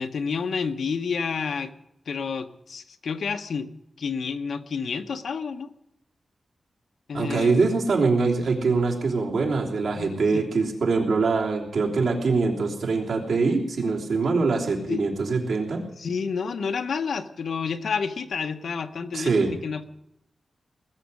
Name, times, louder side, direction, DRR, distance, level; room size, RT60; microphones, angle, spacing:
voice 1, 0.0-1.7 2.1-3.7 4.0-5.7 7.1-7.6 9.9-10.5 14.9-15.0 16.0-19.3 19.6-19.8, left 5 dB, 75° left, 8 dB, 0.9 m, -29 dB
voice 2, 7.1-15.8 19.1-19.5, right 4 dB, 90° right, -1 dB, 3.2 m, -23 dB
20.0 x 7.1 x 9.6 m, 0.82 s
wide cardioid pair, 160°, 0 cm